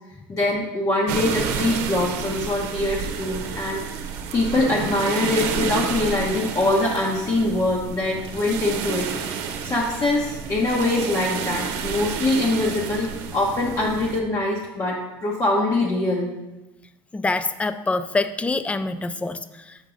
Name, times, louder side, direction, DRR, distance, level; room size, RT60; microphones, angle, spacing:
voice 1, 0.3-3.8 4.3-9.1 9.6-16.3, left 2 dB, 30° left, -3 dB, 1.0 m, -23 dB
sound 1, 1.1-14.2, right 7 dB, 75° right, 0.7 m, -30 dB
voice 2, 17.1-19.8, left 3 dB, 10° left, 12 dB, 0.3 m, -25 dB
6.4 x 4.6 x 3.8 m, 1.0 s
supercardioid pair, 100°, 11 cm